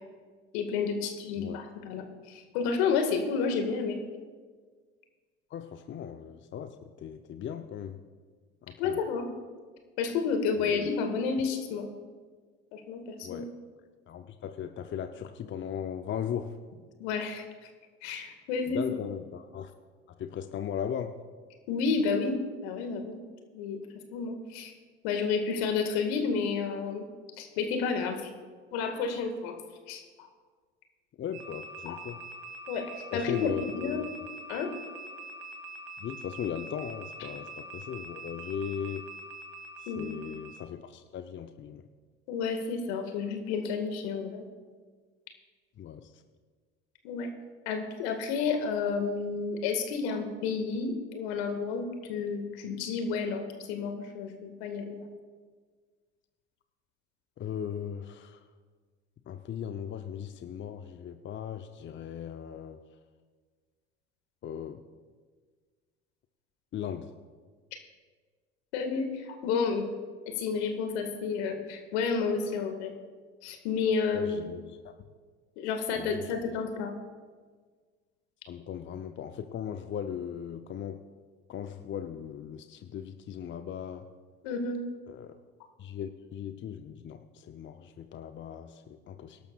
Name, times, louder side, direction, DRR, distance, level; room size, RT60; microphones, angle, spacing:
voice 1, 0.5-4.0 8.8-9.2 10.0-11.9 12.7-13.5 17.0-17.5 18.0-18.8 21.7-23.2 23.5-23.8 24.1-24.7 25.0-27.0 27.4-28.3 28.7-29.5 29.9-30.0 31.9-32.0 32.7-34.0 34.5-34.7 39.9-40.2 42.3-44.4 47.0-47.3 47.7-55.1 68.7-69.9 70.4-72.9 73.4-74.4 75.6-76.9 84.4-84.8, left 5 dB, 65° left, 6 dB, 1.9 m, -31 dB
voice 2, 5.5-8.0 8.6-9.0 10.6-10.9 13.2-13.5 14.1-16.5 18.7-19.7 20.1-21.1 31.2-32.2 33.1-34.1 36.0-39.0 39.8-41.8 45.8-46.2 57.4-58.4 59.3-62.8 64.4-64.8 66.7-67.1 74.1-74.9 76.0-76.6 78.5-81.0 81.5-84.1 85.1-85.4 85.8-89.4, left 8 dB, 35° left, 8 dB, 0.7 m, -38 dB
sound 1, 31.3-40.6, right 1 dB, 65° right, 1.9 m, -44 dB
24.0 x 12.0 x 2.4 m, 1.5 s
hypercardioid pair, 75°, 35 cm